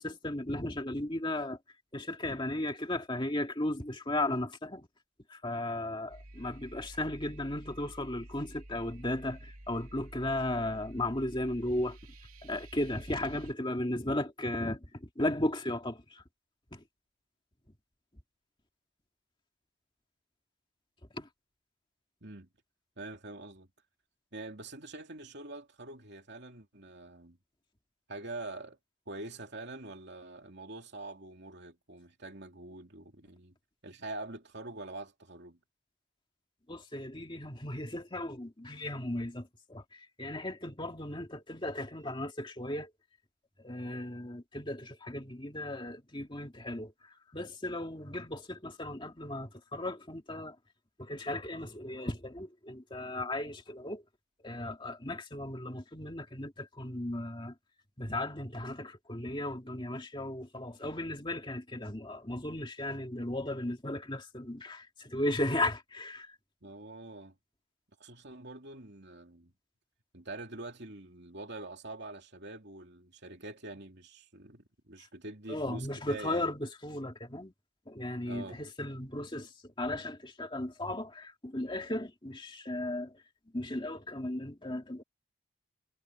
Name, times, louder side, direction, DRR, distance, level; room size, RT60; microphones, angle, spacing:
voice 1, 0.0-1.6 1.9-4.9 5.3-12.0 12.4-16.2 16.7-16.8 21.2-21.3 36.7-42.9 43.6-46.9 47.3-50.6 51.0-54.0 54.4-57.5 58.0-66.3 75.5-77.5 77.9-83.2 83.5-85.0, left 1 dB, 20° left, 2.1 m, -36 dB
sound 1, 6.1-13.5, right 1 dB, 85° right, 2.8 m, -50 dB
voice 2, 23.0-23.7 24.3-27.4 28.1-28.8 29.1-33.6 33.8-35.6 66.6-67.4 68.0-69.5 70.1-76.5 78.3-78.6, right 2 dB, 50° right, 3.0 m, -45 dB
head